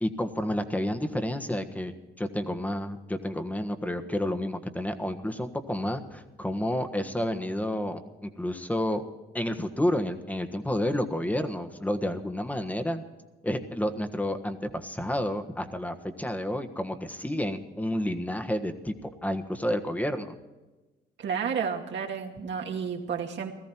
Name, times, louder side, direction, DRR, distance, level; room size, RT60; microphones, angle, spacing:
voice 1, 0.0-9.0 9.3-13.0 13.4-20.3, left 1 dB, 5° left, 7 dB, 1.4 m, -30 dB
voice 2, 21.2-23.5, right 6 dB, 65° right, 1 dB, 2.3 m, -31 dB
17.5 x 14.0 x 4.5 m, 1.2 s
cardioid pair, 90°, 20 cm